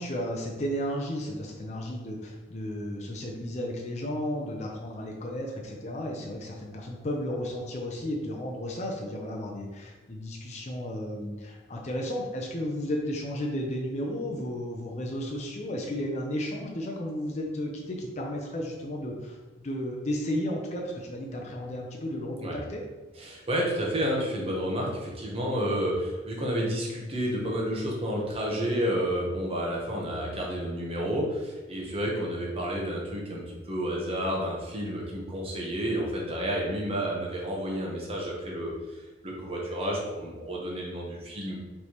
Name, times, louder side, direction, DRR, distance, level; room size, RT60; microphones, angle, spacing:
voice 1, 0.0-22.8, equal, 40° left, 0 dB, 0.5 m, -33 dB
voice 2, 23.2-38.8 39.2-41.6, equal, 30° right, -2 dB, 0.8 m, -30 dB
4.4 x 3.3 x 2.9 m, 1.2 s
head